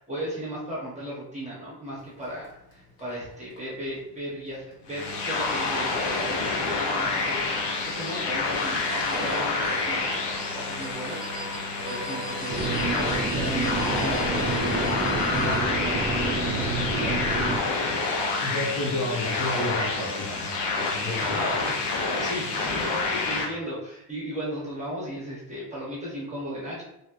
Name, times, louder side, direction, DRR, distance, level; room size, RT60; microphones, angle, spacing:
voice 1, 0.0-11.2 11.8-14.7 15.3-17.8 21.2-26.8, equal, 15° right, -7 dB, 0.8 m, -36 dB
sound 1, 2.0-15.6, right 1 dB, 70° left, 1.2 m, -43 dB
sound 2, 4.9-23.5, left 3 dB, 85° left, 0.7 m, -28 dB
sound 3, 12.5-17.6, right 3 dB, 35° right, 0.4 m, -29 dB
voice 2, 18.4-21.4, left 1 dB, 45° left, -4 dB, 0.8 m, -31 dB
3.0 x 2.7 x 2.4 m, 0.82 s
cardioid pair, 175°, 41 cm